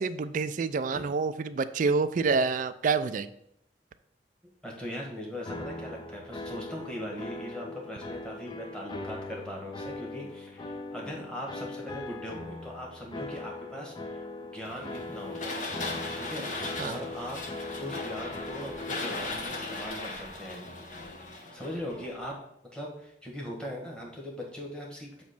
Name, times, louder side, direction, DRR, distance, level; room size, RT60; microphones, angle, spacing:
voice 1, 0.0-3.3 16.8-17.0, right 4 dB, 45° right, 13 dB, 0.3 m, -27 dB
voice 2, 4.6-14.2 14.5-15.6 16.1-17.4 17.7-21.1 21.5-22.3 22.7-25.2, equal, 5° left, -2 dB, 1.4 m, -40 dB
sound 1, 5.4-19.2, left 2 dB, 25° left, 0.5 m, -40 dB
sound 2, 14.6-22.3, left 2 dB, 45° left, 1.0 m, -38 dB
7.2 x 3.1 x 5.9 m, 0.75 s
head